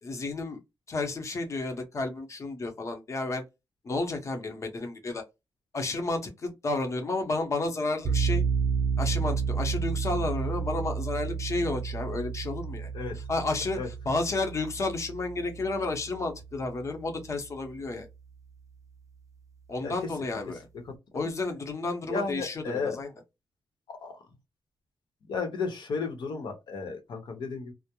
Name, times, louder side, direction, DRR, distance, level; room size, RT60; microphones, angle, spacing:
voice 1, 0.0-0.6 0.9-3.4 3.8-5.2 5.7-8.4 9.0-12.9 13.1-18.1 19.7-20.7 21.1-23.1, left 2 dB, 40° left, 0.7 m, -31 dB
sound 1, 8.0-16.9, right 6 dB, 40° right, 0.4 m, -31 dB
voice 2, 22.1-23.0 24.0-24.1 25.3-27.7, left 4 dB, 65° left, 0.8 m, -33 dB
2.2 x 2.0 x 2.8 m
wide cardioid pair, 125°, 8 cm